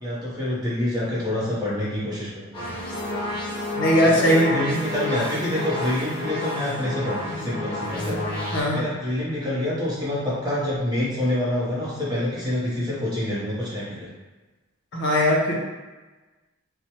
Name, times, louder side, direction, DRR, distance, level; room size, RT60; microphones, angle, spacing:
voice 1, 0.0-2.6 4.1-8.2 8.7-14.1, left 1 dB, 20° right, -8 dB, 0.8 m, -27 dB
sound 1, 2.5-8.6, left 1 dB, 20° left, 0.8 m, -30 dB
voice 2, 3.7-4.7 8.5-8.8 14.9-15.5, left 1 dB, 55° left, -3 dB, 0.5 m, -19 dB
3.1 x 2.1 x 2.8 m, 1.2 s
head